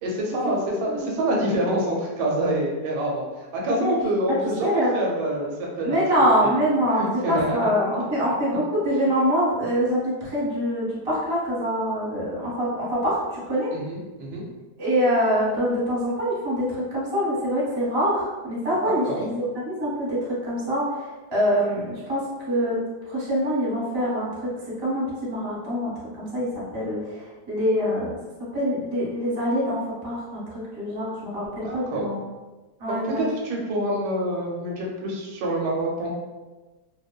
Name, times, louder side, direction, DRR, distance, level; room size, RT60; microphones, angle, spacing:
voice 1, 0.0-6.0 6.4-6.6 6.9-7.7 13.7-14.4 18.8-19.2 31.6-32.1 32.9-36.1, right 1 dB, 90° right, -2 dB, 1.2 m, -26 dB
voice 2, 4.6-4.9 5.8-13.7 14.8-20.2 20.4-20.8 21.3-22.2 22.5-22.8 23.1-24.5 24.8-25.9 26.2-27.1 27.5-28.2 28.5-30.4 30.7-32.2 32.8-33.2, equal, 25° right, -7 dB, 0.6 m, -24 dB
2.8 x 2.1 x 2.3 m, 1.2 s
omnidirectional pair, 1.7 m